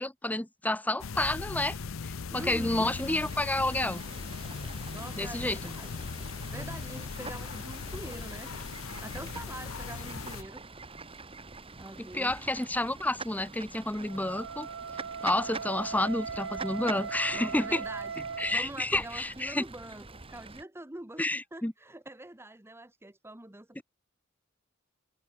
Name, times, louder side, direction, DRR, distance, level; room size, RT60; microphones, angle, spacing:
voice 1, 0.0-1.8 2.0-4.0 5.2-5.6 12.1-14.7 15.2-17.8 18.4-19.6 21.2-21.7 23.8-23.9, left 1 dB, 10° left, 0.6 m, -30 dB
sound 1, 1.0-10.4, left 5 dB, 75° left, 0.7 m, -39 dB
voice 2, 2.3-2.9 4.9-6.1 6.5-8.6 9.0-10.6 11.8-12.3 17.3-18.1 18.5-21.2 21.5-23.8, right 1 dB, 10° right, 1.2 m, -44 dB
Fowl / Bird, 2.9-20.6, right 3 dB, 30° right, 1.9 m, -46 dB
Wind instrument woodwind instrument, 14.0-18.6, right 5 dB, 65° right, 0.8 m, -38 dB
head